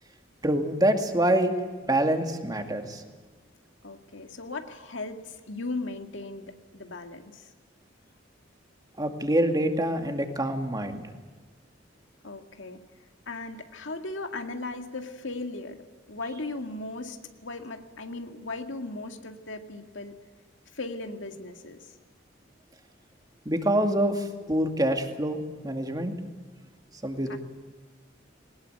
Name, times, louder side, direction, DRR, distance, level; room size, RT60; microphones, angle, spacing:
voice 1, 0.4-1.5 1.9-3.0 9.0-11.0 23.5-26.1 27.0-27.4, right 1 dB, 20° right, 5 dB, 2.3 m, -26 dB
voice 2, 3.8-7.5 12.2-12.8 13.3-15.8 16.1-20.2 20.7-21.9 27.3-27.4, left 2 dB, 75° left, 5 dB, 2.1 m, -37 dB
21.0 x 19.5 x 9.3 m, 1.4 s
head